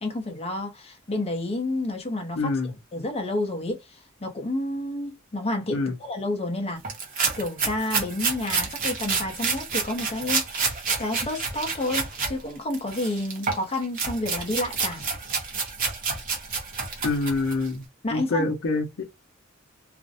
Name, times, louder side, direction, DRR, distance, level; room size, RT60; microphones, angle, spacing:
voice 1, 0.0-2.5 2.9-6.8 7.4-10.7 11.0-15.0 18.0-18.5, left 1 dB, 30° left, 0.6 m, -30 dB
voice 2, 2.4-2.7 5.7-5.9 17.0-17.8 18.1-19.0, left 3 dB, 70° left, 0.6 m, -26 dB
sound 1, 6.8-12.3 12.7-17.7, right 5 dB, 45° right, 0.8 m, -29 dB
2.4 x 2.0 x 2.6 m
head